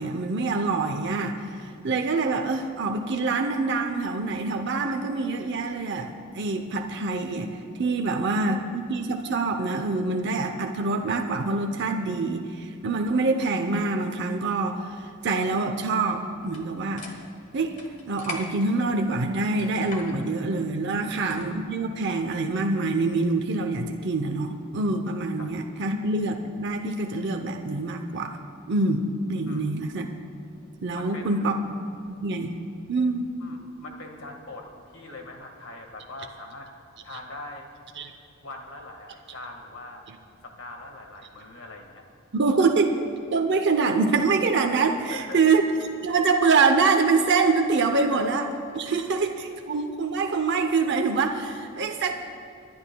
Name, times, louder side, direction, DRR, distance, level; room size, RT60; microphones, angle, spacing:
voice 1, 0.0-7.5 7.8-17.1 17.5-17.8 18.1-28.4 28.7-30.1 30.8-31.5 32.1-32.5 32.9-33.3 38.0-38.1 42.3-42.9 43.3-45.6 46.0-48.5 48.7-52.1, right 3 dB, 55° right, 4 dB, 0.7 m, -25 dB
voice 2, 8.1-8.4 20.9-21.3 25.4-25.5 29.4-29.8 30.9-31.5 33.4-36.7 37.0-37.7 38.4-40.0 40.4-42.0 45.1-45.4 47.9-48.2 49.0-49.1, left 2 dB, 65° left, 3 dB, 1.7 m, -42 dB
sound 1, 16.4-21.6, left 3 dB, 35° left, 1.4 m, -43 dB
29.0 x 11.0 x 2.3 m, 2.6 s
head